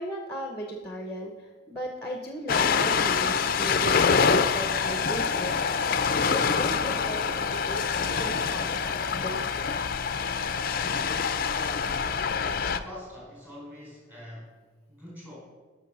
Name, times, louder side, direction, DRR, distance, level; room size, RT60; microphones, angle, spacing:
voice 1, 0.0-9.4, equal, 10° left, 3 dB, 0.9 m, -37 dB
Ocean, 2.5-12.8, left 5 dB, 45° left, 0.5 m, -26 dB
voice 2, 12.8-14.5 14.9-15.4, left 1 dB, 10° right, -4 dB, 4.2 m, -44 dB
12.0 x 6.3 x 6.1 m, 1.3 s
head